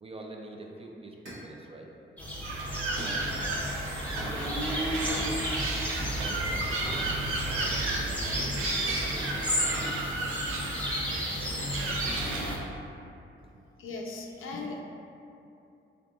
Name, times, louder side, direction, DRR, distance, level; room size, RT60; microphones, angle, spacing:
voice 1, 0.0-1.9 3.0-3.4 4.2-5.5 6.2-7.1 7.4-10.1, right 2 dB, 30° right, 0 dB, 0.4 m, -45 dB
sound 1, 1.2-1.6 3.0-3.3 4.2-4.5 6.0-6.6 7.6-8.7 9.7-10.0, right 1 dB, 70° right, 1.2 m, -45 dB
sound 2, 2.2-12.6, equal, 5° left, 0.8 m, -33 dB
sound 3, 2.4-12.6, right 2 dB, 85° right, 0.5 m, -33 dB
voice 2, 13.8-14.8, left 3 dB, 80° left, 0 dB, 0.5 m, -38 dB
3.5 x 3.4 x 2.5 m, 2.7 s
cardioid pair, 70°, 21 cm